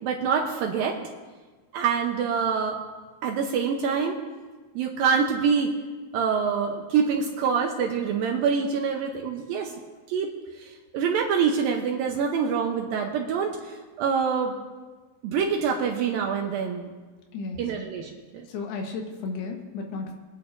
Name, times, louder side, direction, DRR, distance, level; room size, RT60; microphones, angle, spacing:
voice 1, 0.0-1.0 1.7-2.8 3.2-4.2 4.7-5.7 6.1-9.7 10.1-14.5 15.2-16.9 17.6-18.5, right 6 dB, 80° right, 1 dB, 2.1 m, -26 dB
voice 2, 17.3-17.9 18.5-20.1, left 4 dB, 70° left, 3 dB, 3.1 m, -34 dB
24.5 x 10.5 x 2.6 m, 1.3 s
omnidirectional pair, 5.1 m